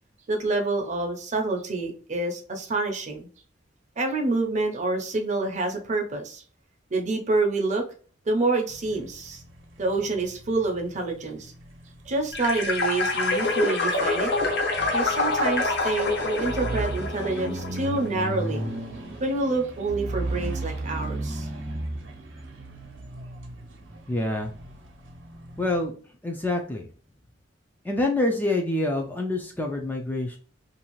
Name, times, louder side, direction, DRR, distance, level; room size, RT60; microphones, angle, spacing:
voice 1, 0.3-3.3 4.0-6.4 6.9-7.8 8.3-9.4 9.8-11.5 12.1-14.3 14.9-18.6 19.2-21.5, right 3 dB, 40° right, 3 dB, 0.6 m, -27 dB
sound 1, 8.7-25.9, right 2 dB, 85° right, 0.7 m, -36 dB
sound 2, 12.3-18.1, left 3 dB, 65° left, 0.6 m, -26 dB
voice 2, 24.1-24.5 25.6-25.9 26.2-26.9 27.8-30.4, left 2 dB, 10° left, 1 dB, 0.4 m, -26 dB
2.6 x 2.4 x 3.0 m, 0.41 s
head